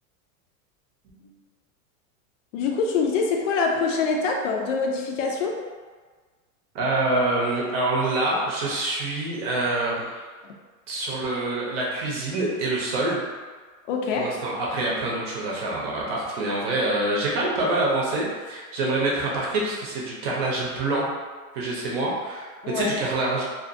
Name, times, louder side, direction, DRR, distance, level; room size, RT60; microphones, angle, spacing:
voice 1, 2.5-5.6 13.9-14.3 22.6-23.0, left 4 dB, 60° left, 1 dB, 0.5 m, -25 dB
voice 2, 6.7-10.2 10.9-13.2 14.2-21.1 21.5-22.5 22.7-23.4, right 2 dB, 45° right, -4 dB, 0.7 m, -26 dB
2.6 x 2.5 x 2.5 m, 1.4 s
supercardioid pair, 155°, 42 cm